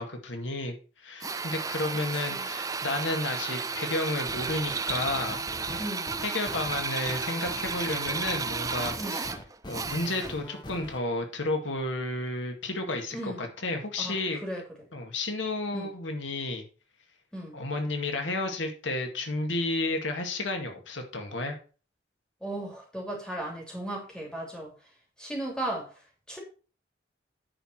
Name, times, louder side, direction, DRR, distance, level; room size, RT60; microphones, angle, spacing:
voice 1, 0.0-5.8 6.2-9.3 9.7-14.4 14.9-16.6 17.5-21.6, left 2 dB, 90° left, 4 dB, 2.0 m, -32 dB
Drill, 1.2-10.5, right 4 dB, 20° right, 0.5 m, -33 dB
voice 2, 2.1-2.5 5.8-6.1 9.0-9.2 13.1-13.5 14.0-14.6 15.7-15.9 17.3-17.6 22.4-24.7 25.2-25.9 26.3-26.4, right 1 dB, 5° left, -1 dB, 3.0 m, -36 dB
sound 1, 4.3-11.0, left 1 dB, 25° left, 1.0 m, -43 dB
9.9 x 4.9 x 6.0 m, 0.37 s
head